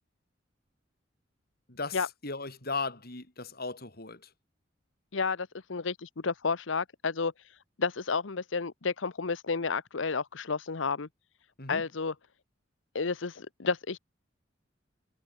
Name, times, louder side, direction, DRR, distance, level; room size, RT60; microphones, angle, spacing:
voice 1, 1.7-4.3 11.6-11.8, left 4 dB, 55° left, 5.6 m, -37 dB
voice 2, 5.1-11.1 11.7-12.1 12.9-14.0, left 4 dB, 80° left, 0.9 m, -31 dB
head